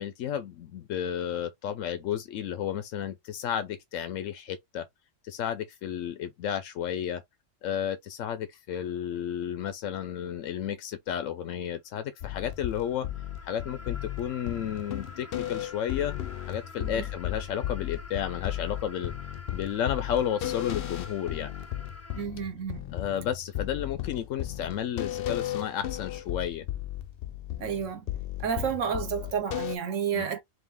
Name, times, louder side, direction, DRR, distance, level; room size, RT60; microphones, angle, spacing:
voice 1, 0.0-4.8 5.2-7.2 7.6-13.1 13.4-19.1 19.5-21.5 22.9-26.7 30.1-30.2, left 9 dB, 90° left, 1.0 m, -32 dB
sound 1, 12.1-22.2, left 2 dB, 15° left, 0.5 m, -48 dB
sound 2, 12.2-29.8, left 13 dB, 60° left, 0.7 m, -35 dB
voice 2, 22.1-22.9 27.6-28.1 28.4-30.4, right 7 dB, 75° right, 1.2 m, -31 dB
3.9 x 2.7 x 3.5 m
omnidirectional pair, 1.3 m